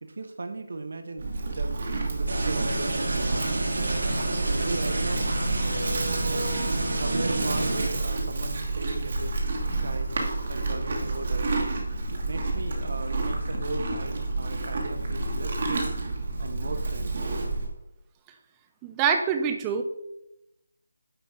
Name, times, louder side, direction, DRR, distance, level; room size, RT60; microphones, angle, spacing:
voice 1, 0.0-3.5 4.4-5.3 6.3-6.4 6.9-9.4 9.8-10.1 10.5-11.6 12.1-16.0 16.4-17.2, right 2 dB, 60° right, 7 dB, 1.1 m, -37 dB
Livestock farm animals working animals, 1.2-17.7, right 2 dB, 40° right, 1.4 m, -30 dB
sound 1, 2.3-7.9, right 2 dB, 80° right, 2.2 m, -29 dB
voice 2, 18.8-19.8, right 6 dB, 10° right, 5 dB, 0.5 m, -25 dB
9.1 x 4.1 x 4.8 m, 0.87 s
figure-of-eight pair, 175°, 0 cm